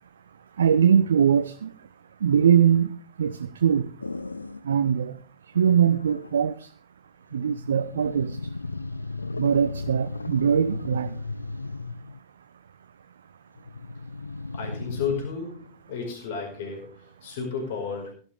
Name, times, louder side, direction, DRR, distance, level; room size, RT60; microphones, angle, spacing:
voice 1, 0.6-1.7 2.2-3.9 4.6-5.1 5.5-6.7 7.3-8.4 9.4-11.2, right 8 dB, 65° right, 10 dB, 0.7 m, -22 dB
sound 1, 4.0-4.7 5.6-6.5 7.3-12.2 13.6-15.3, left 3 dB, 80° left, 0.5 m, -35 dB
voice 2, 14.5-18.1, left 6 dB, 55° left, 2 dB, 5.0 m, -33 dB
16.5 x 12.0 x 3.5 m, 0.42 s
figure-of-eight pair, 90°, 0 cm